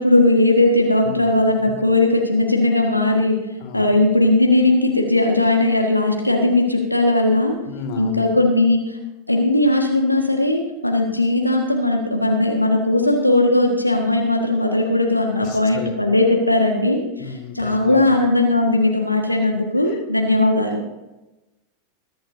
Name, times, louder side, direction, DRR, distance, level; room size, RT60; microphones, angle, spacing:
voice 1, 0.0-3.4 3.7-7.5 8.0-9.0 9.3-20.8, left 2 dB, 85° left, 2 dB, 1.6 m, -18 dB
voice 2, 1.0-1.4 3.6-3.9 7.6-8.2 15.3-15.9 17.2-18.0 19.9-20.0, left 6 dB, 45° left, 5 dB, 2.3 m, -33 dB
21.0 x 12.0 x 2.7 m, 1.0 s
figure-of-eight pair, 90°, 0 cm